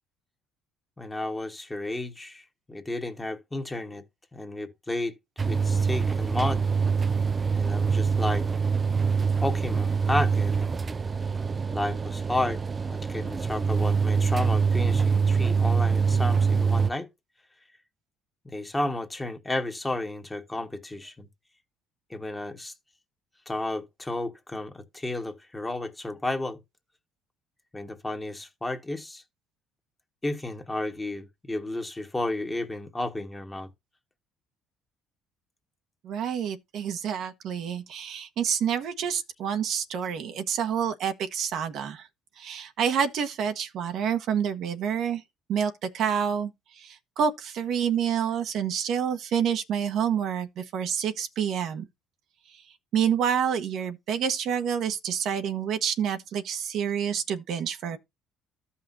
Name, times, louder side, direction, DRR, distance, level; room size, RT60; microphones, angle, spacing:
voice 1, 1.0-4.0 4.3-6.6 7.5-8.5 9.4-10.7 11.7-12.6 12.9-17.1 18.4-21.3 22.1-22.7 23.5-26.6 27.7-29.2 30.2-33.7, left 2 dB, 10° left, 1.4 m, -32 dB
sound 1, 5.4-16.9, right 5 dB, 25° right, 0.5 m, -25 dB
voice 2, 36.0-42.1 42.4-45.2 45.5-51.8 52.9-58.0, right 8 dB, 60° right, 1.2 m, -28 dB
14.0 x 5.7 x 2.7 m
cardioid pair, 120°, 0 cm